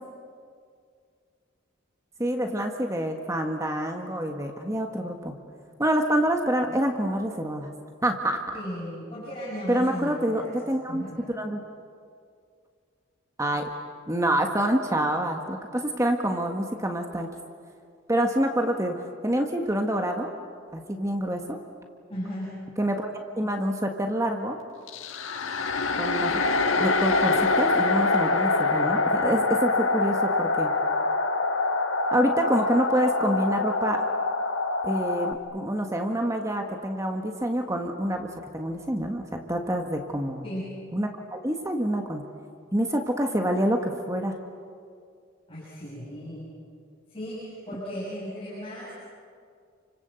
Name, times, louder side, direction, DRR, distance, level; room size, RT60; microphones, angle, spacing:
voice 1, 2.2-5.3 5.8-7.7 8.0-8.4 9.7-11.0 11.3-11.6 13.4-13.7 14.1-17.3 18.1-20.3 20.7-21.6 22.8-24.6 26.0-26.4 26.8-30.7 32.1-34.0 34.8-40.4 40.9-42.2 42.7-44.4, right 1 dB, 15° right, 3 dB, 1.6 m, -27 dB
voice 2, 8.5-10.5 10.9-11.2 22.1-22.5 40.4-40.6 45.5-46.5 47.1-48.9, equal, 30° left, -8 dB, 7.7 m, -36 dB
sound 1, 24.9-35.3, left 3 dB, 75° left, 1.4 m, -25 dB
29.5 x 25.5 x 7.9 m, 2.2 s
head